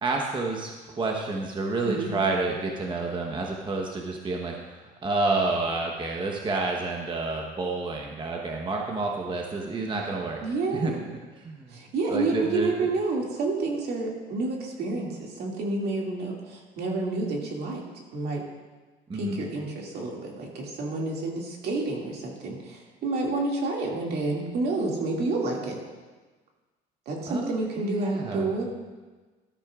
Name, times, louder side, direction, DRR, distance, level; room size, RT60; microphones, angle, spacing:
voice 1, 0.0-10.4 10.7-10.9 11.4-11.8 12.1-12.9 19.1-19.4 27.3-27.5 27.8-28.5, right 3 dB, 30° right, 0 dB, 1.1 m, -29 dB
voice 2, 10.4-11.0 11.7-17.8 18.1-18.4 19.1-25.8 27.1-28.6, right 3 dB, 70° right, -1 dB, 2.2 m, -29 dB
13.0 x 12.5 x 2.4 m, 1.3 s
cardioid pair, 110°, 17 cm